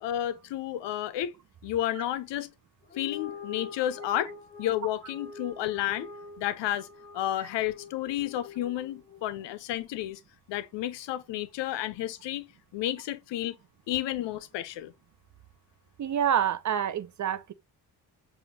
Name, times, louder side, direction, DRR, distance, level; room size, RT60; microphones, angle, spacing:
voice 1, 0.0-1.3 1.6-2.5 3.0-4.3 4.6-6.1 6.4-6.9 7.1-10.2 10.5-12.5 12.7-13.6 13.9-14.9, left 13 dB, 80° left, 0.6 m, -31 dB
sound 1, 2.8-9.4, left 5 dB, 20° left, 0.9 m, -45 dB
voice 2, 16.0-17.5, right 9 dB, 45° right, 0.5 m, -27 dB
5.0 x 2.5 x 2.7 m
cardioid pair, 60°, 42 cm